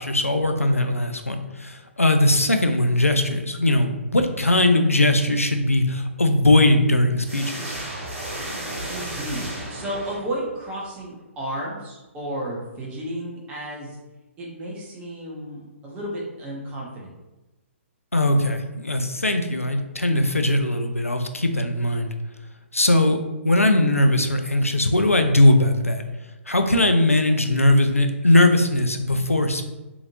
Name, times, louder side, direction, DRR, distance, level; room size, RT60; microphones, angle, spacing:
voice 1, 0.0-7.8 18.1-22.1 22.7-26.0 26.5-29.7, left 1 dB, 85° left, 7 dB, 0.4 m, -20 dB
sound 1, 7.2-10.6, right 1 dB, 65° right, 1.3 m, -33 dB
voice 2, 8.9-14.0 14.4-17.1, right 1 dB, 15° right, -4 dB, 0.7 m, -33 dB
2.8 x 2.5 x 2.7 m, 1.1 s
figure-of-eight pair, 125°, 7 cm